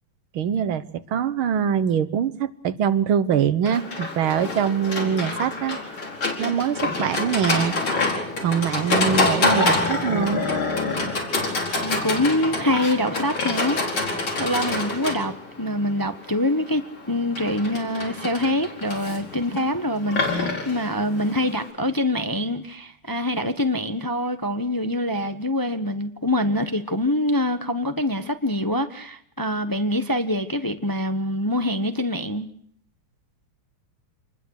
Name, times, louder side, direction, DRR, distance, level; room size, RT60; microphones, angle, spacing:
voice 1, 0.3-5.8 6.4-7.8 8.1-10.4, right 8 dB, 90° right, 2.0 m, -23 dB
Livestock farm animals working animals, 3.7-21.7, left 3 dB, 80° left, 5.4 m, -26 dB
voice 2, 11.8-13.8 14.4-32.5, left 1 dB, 15° left, 0.8 m, -25 dB
27.0 x 21.0 x 6.5 m
omnidirectional pair, 2.2 m